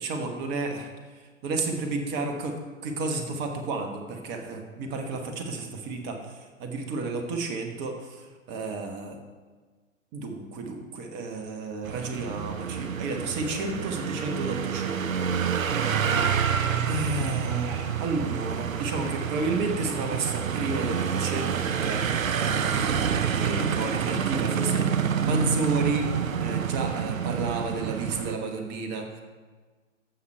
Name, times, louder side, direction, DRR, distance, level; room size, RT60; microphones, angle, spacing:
voice 1, 0.0-9.2 10.1-15.6 16.9-26.1 26.4-29.2, right 3 dB, 25° right, 4 dB, 1.3 m, -32 dB
sound 1, 11.8-28.4, right 7 dB, 80° right, 0.7 m, -28 dB
14.5 x 5.7 x 4.5 m, 1.4 s
figure-of-eight pair, 115°, 40 cm